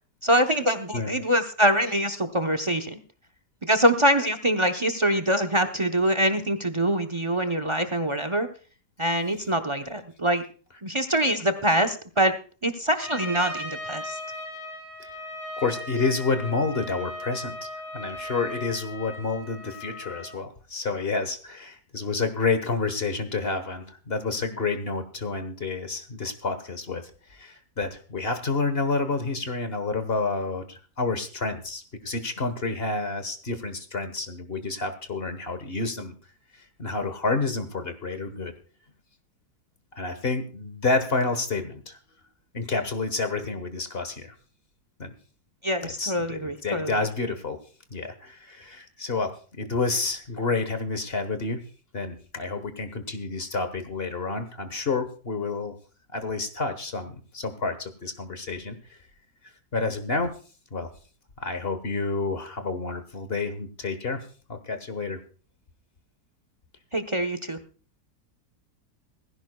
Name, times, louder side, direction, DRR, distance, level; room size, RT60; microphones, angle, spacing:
voice 1, 0.2-3.0 3.6-8.5 9.0-10.4 10.8-12.3 12.6-14.2 45.6-47.0 66.9-67.6, right 1 dB, 30° right, 10 dB, 0.6 m, -24 dB
Trumpet, 13.0-20.3, left 1 dB, 80° left, 7.8 m, -38 dB
voice 2, 15.6-17.7 17.9-27.0 27.4-36.1 36.8-38.5 40.0-41.9 42.5-44.3 45.0-45.1 45.8-47.6 47.9-51.6 51.9-55.8 56.1-58.8 59.7-60.3 60.7-60.9 61.4-64.2 64.5-65.2, left 3 dB, 35° left, 9 dB, 1.4 m, -29 dB
19.0 x 15.5 x 2.3 m, 0.38 s
omnidirectional pair, 1.9 m